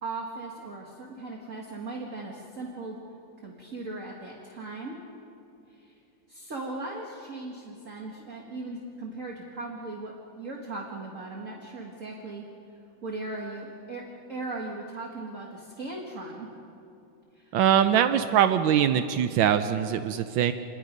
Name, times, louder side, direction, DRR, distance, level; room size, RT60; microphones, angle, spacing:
voice 1, 0.0-3.0 3.4-5.0 5.7-5.9 6.3-12.4 13.0-14.0 14.3-16.5 17.3-17.6, right 2 dB, 40° right, -1 dB, 2.1 m, -38 dB
voice 2, 17.5-20.5, right 9 dB, 85° right, 9 dB, 1.4 m, -22 dB
28.5 x 20.5 x 5.3 m, 2.7 s
omnidirectional pair, 2.1 m